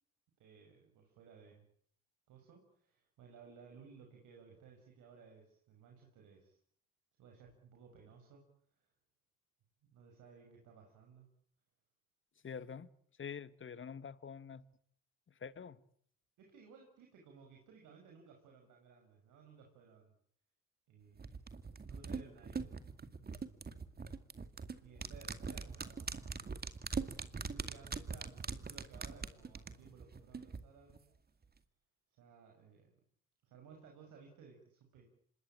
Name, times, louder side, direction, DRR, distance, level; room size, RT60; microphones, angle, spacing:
voice 1, 0.4-1.7 2.3-6.6 7.2-8.4 8.8-8.9 9.8-11.3 16.4-20.1 20.9-21.5 21.9-22.8 23.2-23.7 24.8-26.5 27.3-31.0 32.2-32.9 33.4-35.1, right 5 dB, 85° right, 6.5 m, -59 dB
voice 2, 12.4-12.9 13.2-14.6 15.4-15.8, left 7 dB, 40° left, 1.7 m, -46 dB
sound 1, 21.2-30.6 30.9-31.0, right 5 dB, 30° right, 2.3 m, -42 dB
26.0 x 22.0 x 8.9 m
cardioid pair, 90°, 30 cm